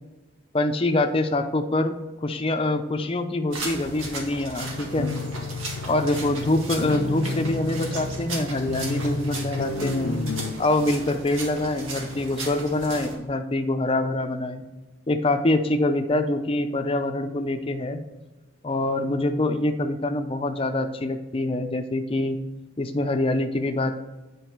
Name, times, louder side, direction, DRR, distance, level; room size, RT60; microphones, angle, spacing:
voice 1, 0.5-1.9 2.2-5.2 5.9-10.1 10.6-14.6 15.1-18.0 18.6-22.4 22.8-24.0, left 2 dB, 25° left, 6 dB, 0.6 m, -25 dB
sound 1, 3.5-13.2, right 2 dB, 80° right, 1.8 m, -36 dB
sound 2, 4.6-10.5, left 2 dB, 90° left, 0.6 m, -31 dB
8.4 x 4.8 x 4.5 m, 1.1 s
head